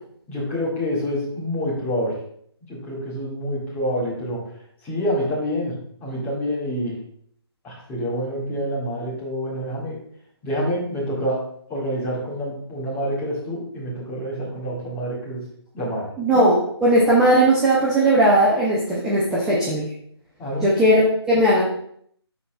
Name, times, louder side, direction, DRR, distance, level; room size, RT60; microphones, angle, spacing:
voice 1, 0.3-2.2 2.7-4.4 4.8-6.9 7.6-10.0 10.4-11.4 11.7-15.4 15.7-16.0 20.4-20.7, equal, 15° left, -7 dB, 1.9 m, -27 dB
voice 2, 16.2-19.8 20.6-21.6, right 1 dB, 5° right, -7 dB, 0.6 m, -18 dB
11.5 x 4.2 x 2.3 m, 0.66 s
figure-of-eight pair, 155°, 14 cm